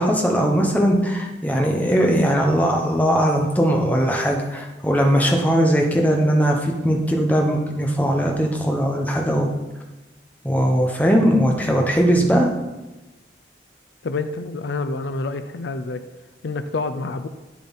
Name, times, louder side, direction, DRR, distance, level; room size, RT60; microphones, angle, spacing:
voice 1, 0.0-9.5 10.4-12.5, equal, 10° left, 1 dB, 1.0 m, -19 dB
voice 2, 14.0-16.0 16.4-17.3, left 3 dB, 75° left, 11 dB, 0.5 m, -27 dB
9.2 x 7.1 x 4.1 m, 1.1 s
head